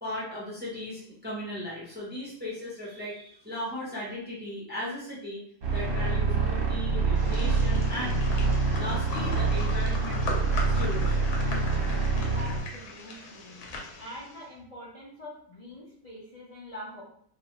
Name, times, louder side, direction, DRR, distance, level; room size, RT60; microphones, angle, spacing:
voice 1, 0.0-5.4 5.7-8.2 8.8-10.4 10.8-11.3, left 1 dB, 10° right, -7 dB, 0.5 m, -37 dB
sound 1, 5.6-12.6, right 3 dB, 45° right, 0.8 m, -26 dB
sound 2, 7.2-14.5, left 3 dB, 85° left, 1.1 m, -40 dB
voice 2, 12.3-13.6 14.0-17.0, equal, 70° left, -7 dB, 0.3 m, -44 dB
2.5 x 2.4 x 3.0 m, 0.62 s
omnidirectional pair, 1.6 m